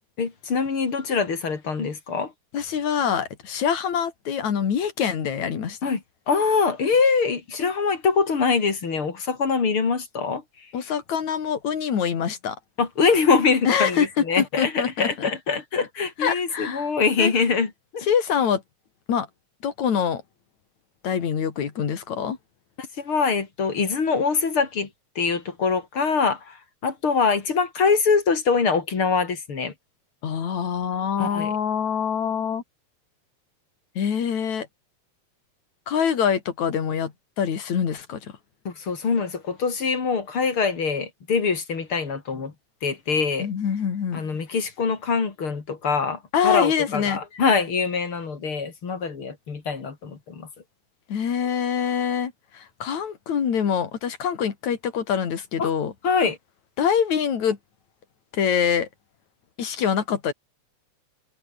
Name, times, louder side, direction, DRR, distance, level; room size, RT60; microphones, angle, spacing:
voice 1, 0.2-2.3 5.8-6.0 6.3-10.4 12.8-18.1 22.8-24.9 25.2-29.7 31.2-31.5 38.7-42.5 42.8-43.5 44.1-50.5 55.6-55.7 56.0-56.4, left 5 dB, 45° left, 3.8 m, -24 dB
voice 2, 2.5-5.8 10.7-12.6 13.7-14.1 14.4-15.3 16.2-16.9 17.2-17.3 18.0-18.6 19.1-19.3 19.6-20.2 21.0-22.4 30.2-32.6 34.0-34.7 35.9-38.3 43.4-44.2 46.3-47.2 51.1-55.9 56.8-57.6 58.3-58.9 59.6-60.3, left 7 dB, 70° left, 4.0 m, -25 dB
omnidirectional pair, 3.4 m